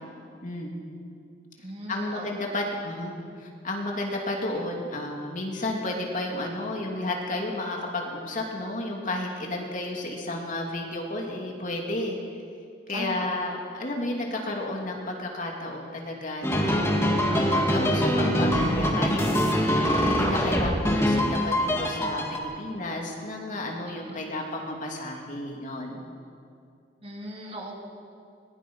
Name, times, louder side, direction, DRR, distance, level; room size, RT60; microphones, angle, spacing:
voice 1, 0.4-0.7 1.9-12.2 12.9-16.8 17.3-19.2 19.5-26.1, left 1 dB, 45° left, 0 dB, 2.8 m, -32 dB
voice 2, 1.6-2.3 12.9-13.3 24.0-24.2 27.0-27.7, right 1 dB, 35° right, -1 dB, 3.0 m, -38 dB
sound 1, 16.4-22.4, equal, 15° left, 2.1 m, -24 dB
21.5 x 21.5 x 5.6 m, 2.4 s
head